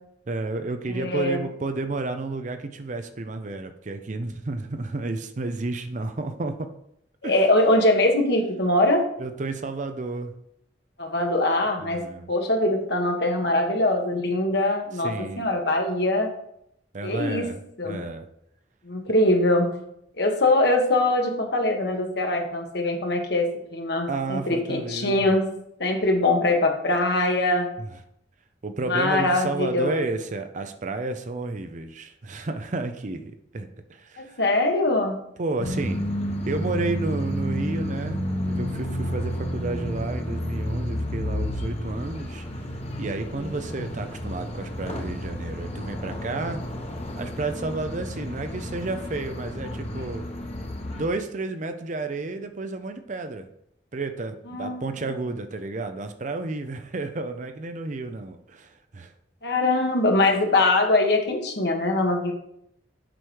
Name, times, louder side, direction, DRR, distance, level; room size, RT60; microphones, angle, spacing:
voice 1, 0.3-6.7 7.2-7.3 9.2-10.3 11.8-12.3 15.0-15.5 16.9-18.3 24.1-25.3 27.8-27.9 28.6-34.4 35.4-36.1 36.5-42.4 43.0-46.6 47.2-50.3 50.9-53.5 53.9-59.1, right 3 dB, 45° right, 8 dB, 0.6 m, -31 dB
voice 2, 0.9-1.4 7.2-9.0 11.0-12.0 12.3-16.3 17.0-17.5 17.8-18.0 18.8-19.7 20.2-25.5 25.8-27.7 28.8-30.0 34.2-35.2 54.5-54.8 59.4-62.3, left 2 dB, 65° left, 3 dB, 1.4 m, -22 dB
sound 1, 35.6-51.1, equal, 35° left, 1.1 m, -31 dB
7.7 x 4.9 x 4.7 m, 0.74 s
head